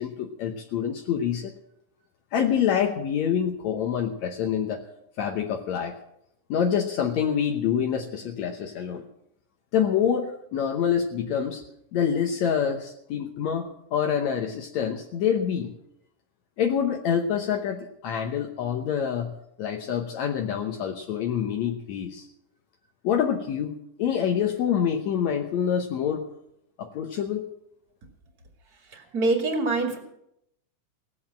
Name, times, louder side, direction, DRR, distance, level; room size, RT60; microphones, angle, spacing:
voice 1, 0.0-1.5 2.3-4.8 5.2-6.0 6.5-9.0 9.7-11.6 11.9-15.7 16.6-19.3 19.6-22.3 23.0-23.7 24.0-26.3 26.8-27.5, left 8 dB, 70° left, 4 dB, 2.2 m, -26 dB
voice 2, 28.9-30.0, right 3 dB, 35° right, 3 dB, 2.6 m, -25 dB
17.5 x 8.0 x 7.5 m, 0.77 s
omnidirectional pair, 3.4 m